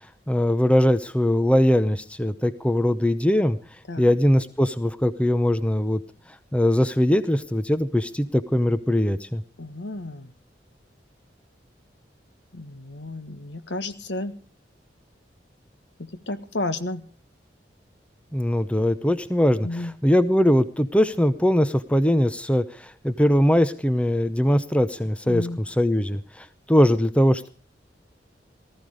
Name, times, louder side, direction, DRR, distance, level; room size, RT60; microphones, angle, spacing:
voice 1, 0.3-3.6 4.0-6.0 6.5-9.4 18.3-27.5, left 1 dB, 5° left, 13 dB, 0.7 m, -21 dB
voice 2, 9.6-10.3 12.5-14.4 16.0-17.0 19.6-19.9 25.3-25.6, left 2 dB, 75° left, 11 dB, 1.5 m, -32 dB
18.5 x 14.0 x 5.0 m, 0.37 s
head